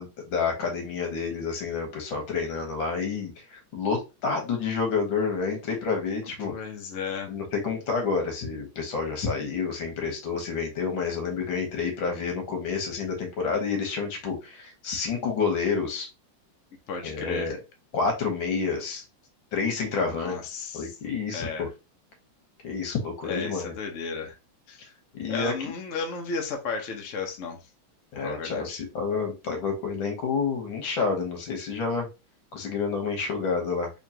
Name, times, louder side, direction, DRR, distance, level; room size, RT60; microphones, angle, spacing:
voice 1, 0.0-6.5 7.3-16.1 17.0-17.6 17.9-19.0 19.5-20.4 20.7-21.7 22.6-23.7 25.1-25.7 28.1-32.1 32.5-34.0, left 5 dB, 75° left, 2 dB, 1.8 m, -29 dB
voice 2, 6.4-7.3 16.9-17.5 20.1-20.9 21.3-21.7 23.3-24.3 24.7-24.9 25.3-27.6 28.1-28.8, left 4 dB, 55° left, 3 dB, 0.9 m, -34 dB
3.7 x 3.1 x 2.8 m, 0.27 s
omnidirectional pair, 2.1 m